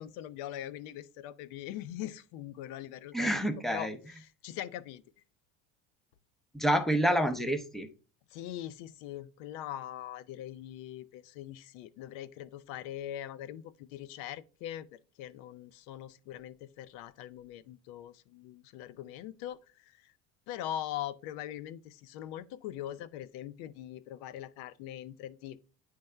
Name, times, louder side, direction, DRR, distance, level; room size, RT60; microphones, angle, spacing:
voice 1, 0.0-3.3 3.7-5.0 8.3-20.1 20.5-25.6, left 12 dB, 75° left, 0.6 m, -42 dB
voice 2, 3.1-4.0 6.5-7.9, equal, ahead, 0.6 m, -28 dB
9.3 x 3.4 x 3.3 m
supercardioid pair, 120°, 35 cm